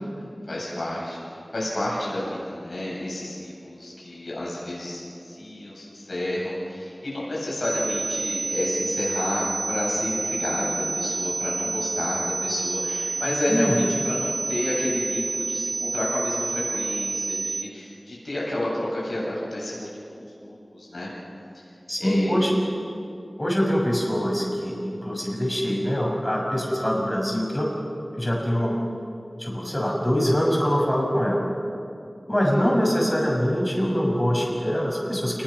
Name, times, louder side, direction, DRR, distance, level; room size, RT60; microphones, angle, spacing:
voice 1, 0.5-21.1 21.5-21.7 22.0-22.3, left 1 dB, 80° left, -5 dB, 7.9 m, -30 dB
sound 1, 7.6-17.6, right 2 dB, 60° right, 1.6 m, -29 dB
voice 2, 13.5-13.8 21.9-22.5 23.4-27.7 28.1-28.8 29.4-31.4 32.3-35.4, equal, 20° left, -1 dB, 6.5 m, -24 dB
29.0 x 21.0 x 6.3 m, 2.7 s
wide cardioid pair, 50°, 0 cm